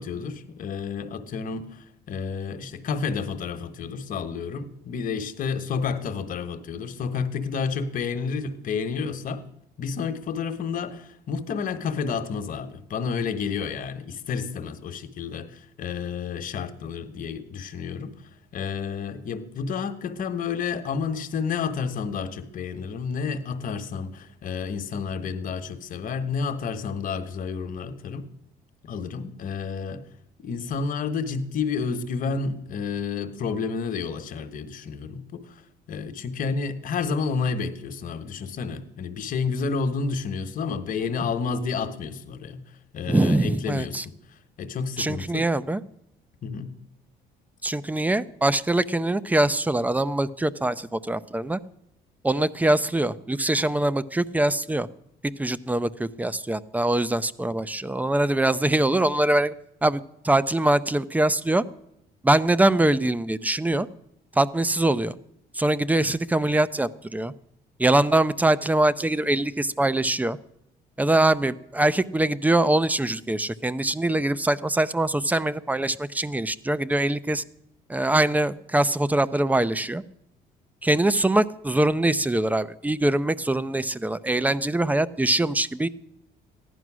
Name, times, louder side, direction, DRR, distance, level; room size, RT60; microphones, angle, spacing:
voice 1, 0.0-9.4 9.8-18.2 18.5-28.3 28.8-30.0 30.4-35.6 35.9-42.6 42.9-44.0 44.3-45.5 46.4-46.7, left 5 dB, 55° left, 1.3 m, -30 dB
voice 2, 43.1-44.1 45.0-45.8 47.6-51.6 52.2-54.9 55.4-59.5 59.8-61.6 62.2-63.9 64.3-65.1 65.5-67.3 67.8-70.4 71.0-77.4 77.9-80.0 80.8-85.9, right 1 dB, 10° right, 0.5 m, -23 dB
14.5 x 11.0 x 6.2 m
cardioid pair, 110°, 17 cm